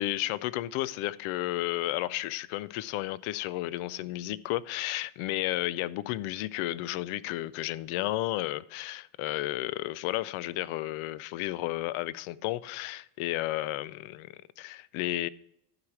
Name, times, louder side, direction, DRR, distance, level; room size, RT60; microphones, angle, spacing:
voice 1, 0.0-15.3, left 16 dB, 75° left, 0.6 m, -32 dB
12.0 x 4.9 x 6.0 m
cardioid pair, 110°, 49 cm